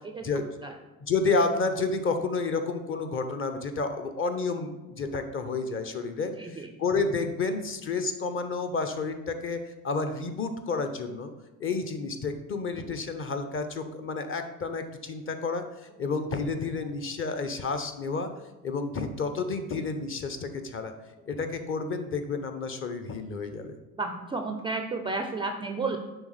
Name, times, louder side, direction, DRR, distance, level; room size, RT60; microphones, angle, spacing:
voice 1, 0.2-0.5 1.0-11.3 11.6-15.6 16.0-18.3 18.6-20.9 21.3-23.7, left 4 dB, 30° left, 7 dB, 0.7 m, -30 dB
voice 2, 6.4-6.7 24.0-26.0, right 3 dB, 15° right, 4 dB, 0.4 m, -32 dB
9.8 x 3.5 x 3.2 m, 1.1 s
figure-of-eight pair, 55°, 44 cm